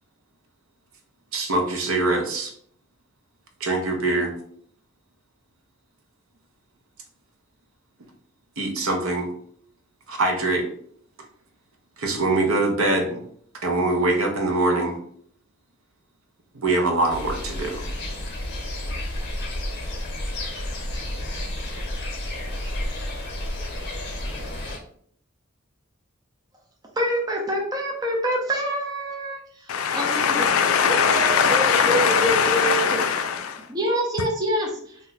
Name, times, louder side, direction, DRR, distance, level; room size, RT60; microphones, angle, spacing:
voice 1, 1.3-2.5 3.6-4.3 8.6-9.3 10.1-10.7 12.0-13.2 13.6-15.0 16.5-17.9, right 2 dB, 75° right, 0.6 m, -23 dB
sound 1, 17.1-24.8, left 1 dB, 55° left, 0.8 m, -31 dB
voice 2, 27.0-30.5 30.8-33.0 33.7-35.0, equal, 20° right, 0.4 m, -26 dB
voice 3, 29.7-33.7, left 6 dB, 75° left, 0.4 m, -21 dB
2.5 x 2.1 x 3.9 m
head